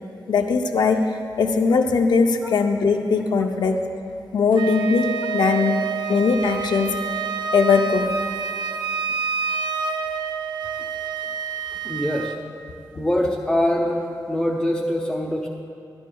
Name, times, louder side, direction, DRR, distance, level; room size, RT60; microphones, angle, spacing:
voice 1, 0.3-1.0 1.4-3.9 4.3-7.0 7.5-8.1, left 4 dB, 80° left, 5 dB, 0.5 m, -20 dB
Wind instrument woodwind instrument, 4.5-12.4, right 6 dB, 80° right, 0.5 m, -28 dB
voice 2, 11.8-12.4 13.0-15.5, left 1 dB, 10° left, -4 dB, 0.6 m, -24 dB
13.5 x 12.0 x 2.3 m, 2.5 s
wide cardioid pair, 165°, 7 cm